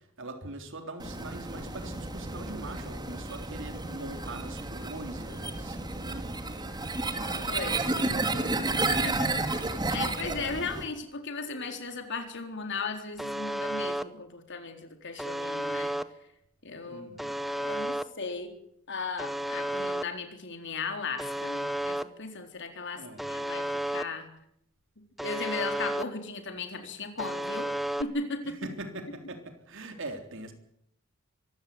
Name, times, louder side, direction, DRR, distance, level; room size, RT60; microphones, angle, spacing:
voice 1, 0.0-8.6 16.8-17.4 22.9-23.5 28.4-30.5, right 2 dB, 60° right, 3.7 m, -43 dB
sound 1, 1.0-10.8, right 2 dB, 20° right, 2.4 m, -32 dB
voice 2, 7.3-7.9 8.9-15.9 16.6-18.5 18.9-24.3 25.0-27.7 28.0-28.6, left 4 dB, 60° left, 4.0 m, -37 dB
Alarm, 13.2-14.0 15.2-16.0 17.2-18.0 19.2-20.0 21.2-22.0 23.2-24.0 25.2-26.0 27.2-28.0, right 1 dB, ahead, 0.9 m, -32 dB
24.5 x 15.5 x 9.5 m
head